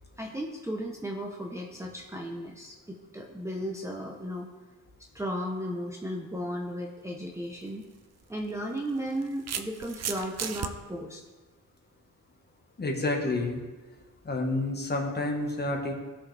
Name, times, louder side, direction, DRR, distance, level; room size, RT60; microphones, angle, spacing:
voice 1, 0.2-4.5 5.1-7.9 8.3-11.2, equal, 10° right, -2 dB, 0.9 m, -35 dB
sound 1, 7.5-7.7 8.8-10.7, right 8 dB, 50° right, 0.6 m, -35 dB
voice 2, 12.8-13.6 14.2-16.0, left 2 dB, 30° left, 1 dB, 1.4 m, -29 dB
17.0 x 6.4 x 3.4 m, 1.2 s
wide cardioid pair, 155°, 34 cm